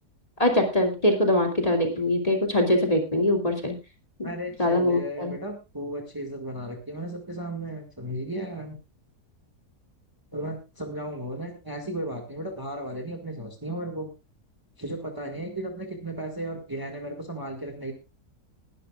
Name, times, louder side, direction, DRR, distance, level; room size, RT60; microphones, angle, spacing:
voice 1, 0.4-3.8 4.2-4.3 4.6-5.3, left 1 dB, 25° left, 2 dB, 2.6 m, -23 dB
voice 2, 4.2-8.8 10.3-14.1 14.8-17.9, right 1 dB, 15° right, 3 dB, 1.8 m, -35 dB
20.0 x 12.0 x 2.4 m, 0.27 s
omnidirectional pair, 1.7 m